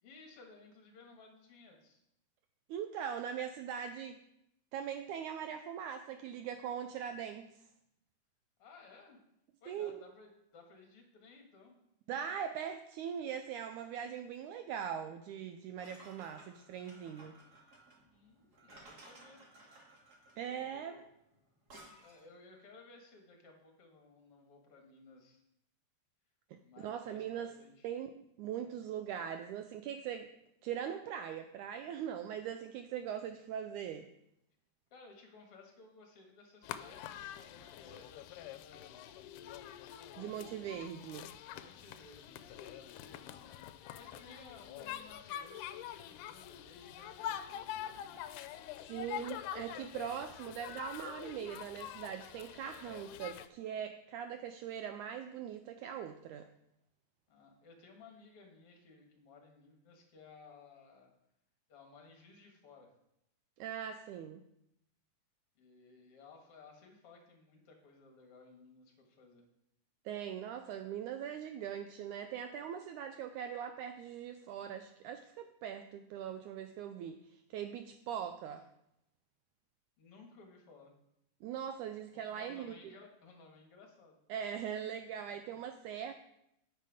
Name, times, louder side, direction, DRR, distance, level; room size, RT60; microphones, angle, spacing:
voice 1, 0.0-2.0 8.6-9.2 9.6-11.8 18.0-19.4 20.4-21.0 22.0-25.4 26.5-27.9 34.9-39.0 41.5-48.2 57.3-61.1 61.7-62.9 65.6-69.5 80.0-80.9 82.1-84.2, left 3 dB, 50° left, 2 dB, 2.3 m, -58 dB
voice 2, 2.7-4.2 4.7-7.7 9.7-9.9 12.1-17.4 20.4-21.0 26.5-27.5 27.8-30.3 30.6-34.1 40.2-41.3 48.8-56.5 63.6-64.4 70.1-78.7 81.4-82.9 84.3-86.1, right 8 dB, 80° right, 8 dB, 1.9 m, -41 dB
sound 1, 15.8-22.3, right 2 dB, 35° right, 2.2 m, -58 dB
sound 2, 36.6-53.5, left 11 dB, 80° left, 2.0 m, -45 dB
9.8 x 9.0 x 5.0 m, 0.82 s
omnidirectional pair, 3.8 m